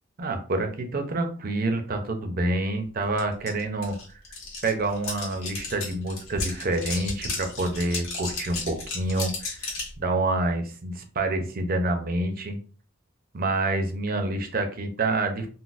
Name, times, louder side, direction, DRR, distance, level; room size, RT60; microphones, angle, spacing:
voice 1, 0.2-4.0 4.6-9.6 10.0-12.6 13.3-15.5, right 2 dB, 45° right, 5 dB, 0.5 m, -27 dB
sound 1, 3.2-3.3 3.5-9.9, left 3 dB, 85° left, 1.2 m, -34 dB
3.9 x 2.0 x 2.4 m, 0.41 s
head